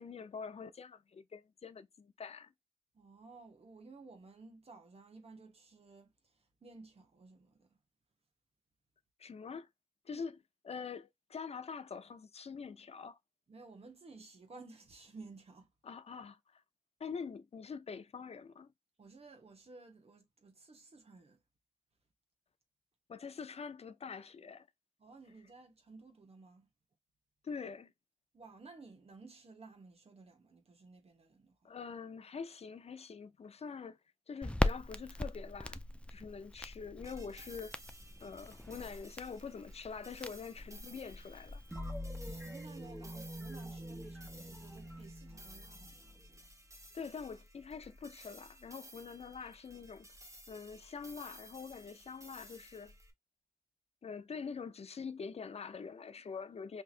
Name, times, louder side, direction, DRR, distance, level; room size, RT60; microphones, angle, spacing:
voice 1, 0.0-2.5 9.2-9.7 10.1-10.4 10.6-13.2 15.8-16.6 17.0-18.7 23.1-24.7 27.4-27.9 31.6-34.0 34.3-35.8 36.1-37.8 38.2-41.6 46.9-50.1 50.5-52.9 54.0-56.8, left 5 dB, 65° left, 0.5 m, -45 dB
voice 2, 2.9-7.8 10.1-10.2 13.5-15.7 19.0-21.4 25.0-26.7 28.3-31.7 42.3-46.5, right 3 dB, 65° right, 1.1 m, -55 dB
Crackle, 34.4-41.7, left 1 dB, 10° left, 0.4 m, -40 dB
sound 1, 37.0-53.1, equal, 30° right, 1.1 m, -56 dB
sound 2, 41.7-46.4, equal, 10° right, 1.3 m, -45 dB
4.5 x 2.8 x 2.4 m
cardioid pair, 55°, 11 cm